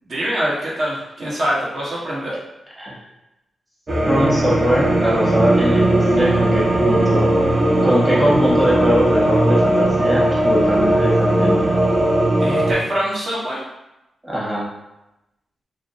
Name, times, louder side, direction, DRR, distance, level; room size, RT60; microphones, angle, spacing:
voice 1, 0.1-2.3 12.4-13.6, equal, 60° right, -6 dB, 1.0 m, -24 dB
sound 1, 3.9-12.7, right 1 dB, 40° right, 0.5 m, -17 dB
voice 2, 4.0-7.3 7.8-11.8 14.2-14.7, equal, 25° right, -6 dB, 1.2 m, -21 dB
2.4 x 2.0 x 2.7 m, 0.92 s
supercardioid pair, 45°, 0 cm